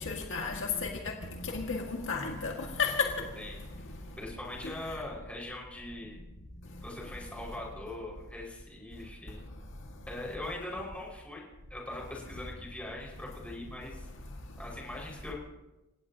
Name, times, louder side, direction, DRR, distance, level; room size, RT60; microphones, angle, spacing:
voice 1, 0.1-0.9 1.5-2.5 2.8-3.1, left 5 dB, 60° left, 1.9 m, -31 dB
voice 2, 3.4-3.7 4.2-6.2 6.8-9.4 10.1-14.1 14.6-15.3, left 1 dB, 5° left, 5.3 m, -41 dB
29.0 x 17.0 x 2.9 m
head